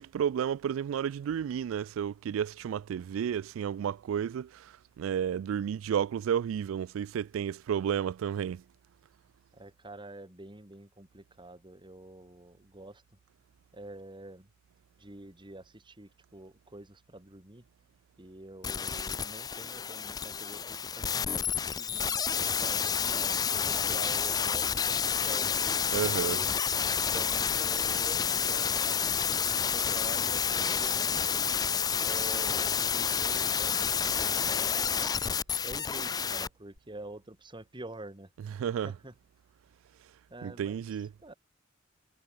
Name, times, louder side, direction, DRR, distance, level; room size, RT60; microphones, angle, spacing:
voice 1, 0.0-8.6 25.9-26.4 38.6-38.9 40.4-41.1, right 8 dB, 85° right, 0.3 m, -32 dB
voice 2, 9.5-13.0 13.7-14.5 15.0-17.7 18.2-25.8 26.0-26.5 26.9-31.4 32.0-35.1 35.6-39.1 40.3-40.9 41.2-41.3, right 1 dB, 25° right, 2.3 m, -47 dB
sound 1, 18.6-36.5 36.8-36.9, left 7 dB, 20° left, 0.4 m, -29 dB
head